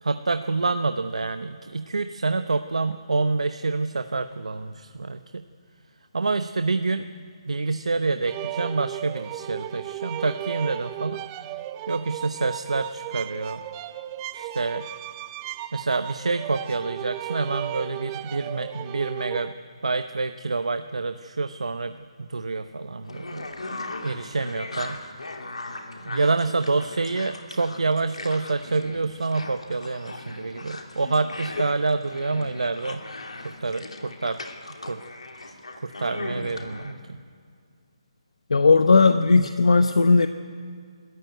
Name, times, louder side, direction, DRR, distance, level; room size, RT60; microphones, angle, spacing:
voice 1, 0.0-5.4 6.1-7.1 7.5-11.2 11.9-13.6 14.3-14.9 15.7-19.5 19.8-23.5 24.0-25.0 26.0-33.0 33.4-34.4 34.9-35.0 35.4-37.2, right 3 dB, 85° right, 9 dB, 0.8 m, -27 dB
sound 1, 8.3-19.5, right 14 dB, 20° right, 0.5 m, -35 dB
sound 2, 23.1-36.9, left 2 dB, 90° left, 2.8 m, -38 dB
voice 2, 38.5-40.3, left 4 dB, 75° left, 9 dB, 1.0 m, -17 dB
23.5 x 14.0 x 9.5 m, 2.2 s
hypercardioid pair, 160°, 3 cm